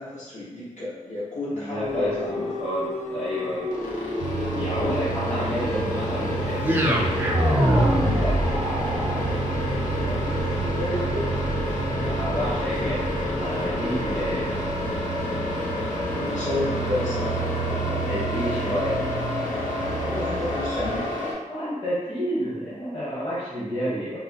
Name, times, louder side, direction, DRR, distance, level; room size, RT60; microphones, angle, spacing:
voice 1, 0.0-2.5 10.0-11.3 16.0-17.4 20.0-21.0, left 1 dB, 70° left, -9 dB, 1.1 m, -31 dB
voice 2, 1.5-3.7 4.5-8.4 11.9-14.6 17.8-19.0 19.8-19.9 21.4-24.2, equal, 35° left, -11 dB, 1.0 m, -30 dB
sound 1, 1.8-21.3, left 2 dB, 90° left, 0.7 m, -29 dB
sound 2, 4.2-21.1, right 6 dB, 75° right, 0.6 m, -32 dB
sound 3, 6.6-14.8, right 1 dB, 15° right, 0.4 m, -26 dB
3.6 x 2.0 x 2.7 m, 1.1 s
wide cardioid pair, 105°, 13 cm